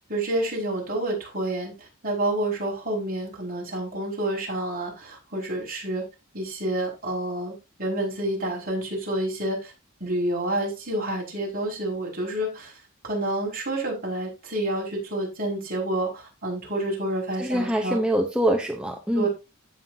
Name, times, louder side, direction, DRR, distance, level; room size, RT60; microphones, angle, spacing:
voice 1, 0.1-6.0 6.3-7.5 7.8-9.7 10.0-12.7 13.0-18.0 19.1-19.3, right 1 dB, 45° right, -3 dB, 5.3 m, -28 dB
voice 2, 17.4-19.3, right 1 dB, 5° right, 2 dB, 0.7 m, -24 dB
15.5 x 5.6 x 2.7 m, 0.26 s
head